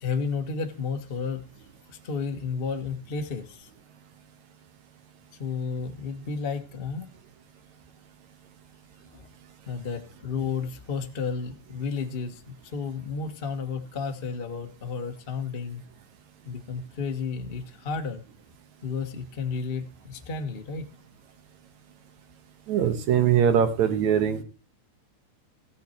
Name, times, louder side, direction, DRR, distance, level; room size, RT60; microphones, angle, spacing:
voice 1, 0.0-1.5 1.9-3.7 5.4-7.1 9.0-9.2 9.7-15.8 16.4-18.2 18.8-20.9, left 5 dB, 65° left, 5 dB, 0.5 m, -32 dB
voice 2, 22.7-24.4, right 8 dB, 65° right, 9 dB, 2.6 m, -22 dB
15.5 x 9.4 x 4.4 m, 0.33 s
omnidirectional pair, 3.6 m